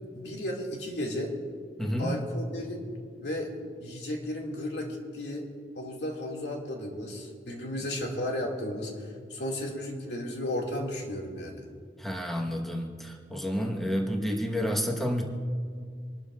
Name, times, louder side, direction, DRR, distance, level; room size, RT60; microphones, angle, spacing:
voice 1, 0.1-1.3 2.0-5.5 5.7-11.6, left 1 dB, 75° left, -1 dB, 2.3 m, -34 dB
voice 2, 1.8-2.1 12.0-15.2, equal, ahead, -1 dB, 1.3 m, -30 dB
26.5 x 13.0 x 2.5 m, 2.1 s
head